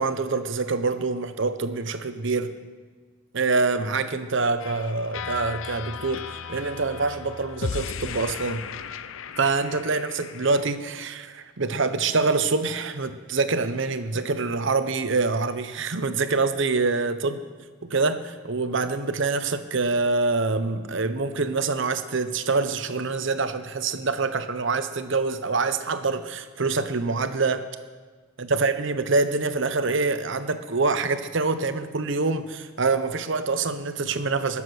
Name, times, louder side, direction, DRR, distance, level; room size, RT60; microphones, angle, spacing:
voice 1, 0.0-2.5 3.3-8.6 9.4-17.4 17.8-27.7 28.4-34.6, right 3 dB, 65° right, 10 dB, 0.9 m, -25 dB
sound 1, 4.6-10.8, left 6 dB, 70° left, 0.5 m, -36 dB
20.5 x 7.3 x 6.2 m, 1.4 s
head